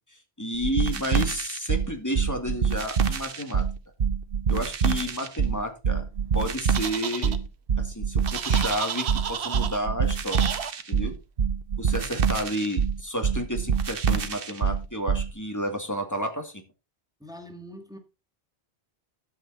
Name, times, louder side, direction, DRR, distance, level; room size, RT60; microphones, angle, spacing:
voice 1, 0.1-3.7 4.5-6.0 6.3-7.4 7.8-10.5 10.9-11.2 11.8-16.6, equal, 15° left, 2.2 m, -31 dB
sound 1, 0.6-15.3, right 6 dB, 60° right, 1.2 m, -26 dB
sound 2, 6.8-7.4 8.3-9.8 10.3-10.7, right 7 dB, 85° right, 1.1 m, -32 dB
voice 2, 17.2-18.0, equal, 5° right, 1.7 m, -44 dB
12.0 x 7.8 x 4.0 m
omnidirectional pair, 1.1 m